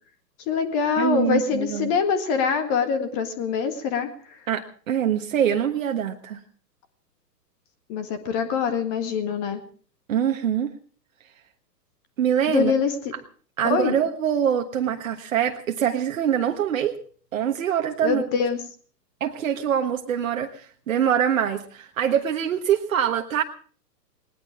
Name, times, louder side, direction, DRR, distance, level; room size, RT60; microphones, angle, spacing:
voice 1, 0.5-4.1 7.9-9.6 12.5-12.9 13.6-13.9 18.0-18.6, left 6 dB, 30° left, 8 dB, 1.8 m, -24 dB
voice 2, 1.0-1.9 4.5-6.4 10.1-10.7 12.2-12.7 13.6-17.0 17.3-18.2 19.2-23.4, right 9 dB, 50° right, 4 dB, 1.5 m, -24 dB
20.0 x 19.5 x 3.6 m, 0.43 s
figure-of-eight pair, 115°, 49 cm